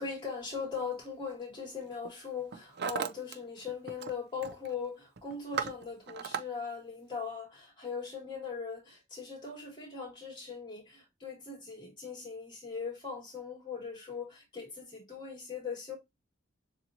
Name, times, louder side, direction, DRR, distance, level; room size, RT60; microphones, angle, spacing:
voice 1, 0.0-16.0, left 5 dB, 25° left, 2.4 m, -40 dB
Hammer, 0.8-1.1 1.8-2.1 2.4-3.4 3.6-4.1 4.4-4.7 5.2-6.4, right 6 dB, 55° right, 0.5 m, -37 dB
6.8 x 2.6 x 2.8 m
head